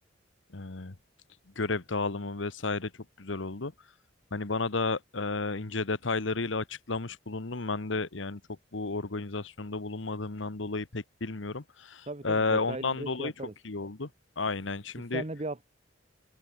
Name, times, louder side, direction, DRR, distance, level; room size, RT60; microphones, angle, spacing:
voice 1, 0.5-1.0 1.6-2.9 3.2-3.7 4.3-8.4 8.7-13.3 13.6-14.1 14.4-15.2, left 3 dB, 80° left, 1.3 m, -32 dB
voice 2, 12.1-13.5 14.9-15.6, right 2 dB, 35° right, 1.3 m, -37 dB
open air
head